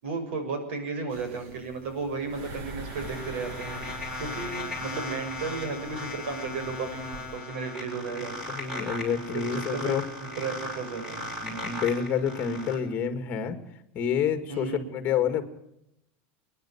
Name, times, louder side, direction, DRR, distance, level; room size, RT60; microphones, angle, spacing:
voice 1, 0.0-8.3 9.3-10.0 10.4-11.3 14.5-14.9, right 4 dB, 80° right, 6 dB, 6.9 m, -34 dB
sound 1, 1.1-7.4, right 3 dB, 45° right, 2.5 m, -44 dB
sound 2, 2.3-12.7, left 2 dB, 10° right, 6.2 m, -37 dB
voice 2, 8.1-10.0 11.4-13.6 13.9-15.4, left 8 dB, 25° left, 9 dB, 2.1 m, -28 dB
28.0 x 10.5 x 9.7 m, 0.80 s
supercardioid pair, 180°, 6 cm